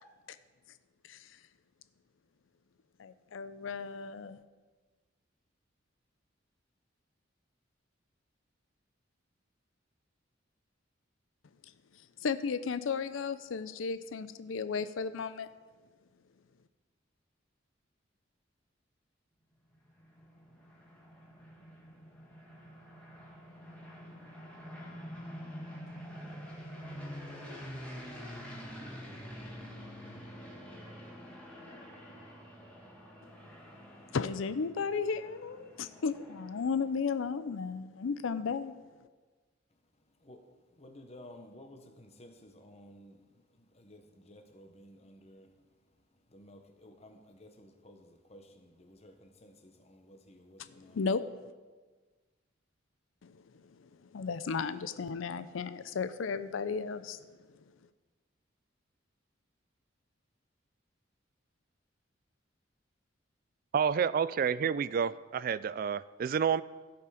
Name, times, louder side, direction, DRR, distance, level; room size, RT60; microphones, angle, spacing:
voice 1, 3.0-4.4 12.2-15.5 34.1-38.7 50.6-51.2 53.2-57.3, left 5 dB, 85° left, 12 dB, 0.5 m, -34 dB
sound 1, 19.7-36.9, equal, 5° left, 1.9 m, -47 dB
voice 2, 40.2-45.5 46.3-51.0, left 1 dB, 35° left, 5 dB, 1.1 m, -55 dB
voice 3, 63.7-66.6, right 7 dB, 45° right, 18 dB, 0.3 m, -29 dB
16.0 x 5.7 x 5.0 m, 1.3 s
head